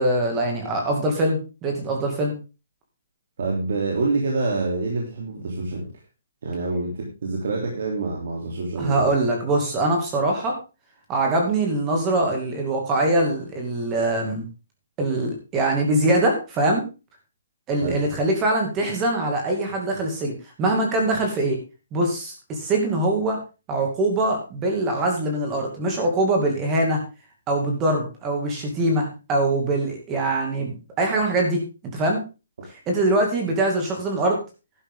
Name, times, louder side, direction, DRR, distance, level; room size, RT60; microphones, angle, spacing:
voice 1, 0.0-2.3 8.8-10.6 11.1-14.5 15.0-16.8 17.7-20.3 20.6-21.6 21.9-23.4 23.7-27.0 27.5-31.6 31.9-32.2 32.9-34.4, right 2 dB, 10° right, 2 dB, 2.3 m, -23 dB
voice 2, 3.4-5.9 6.4-9.0 17.8-18.0, right 3 dB, 45° right, -1 dB, 3.1 m, -26 dB
11.5 x 11.0 x 3.7 m, 0.31 s
hypercardioid pair, 180°, 0 cm